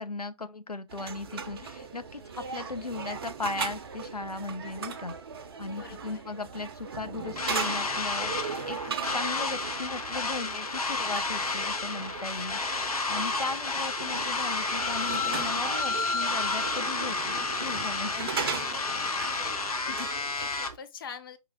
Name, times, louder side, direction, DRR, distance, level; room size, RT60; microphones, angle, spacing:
voice 1, 0.0-5.1 5.6-8.3 8.7-18.3 19.9-20.1, left 3 dB, 90° left, 0.6 m, -37 dB
sound 1, 0.9-20.8, right 5 dB, 40° right, 0.6 m, -38 dB
voice 2, 5.7-6.2 18.5-19.6 19.9-21.4, left 7 dB, 35° left, 0.7 m, -46 dB
sound 2, 7.4-20.7, left 3 dB, 75° left, 1.0 m, -31 dB
4.8 x 3.1 x 3.4 m
figure-of-eight pair, 135°, 19 cm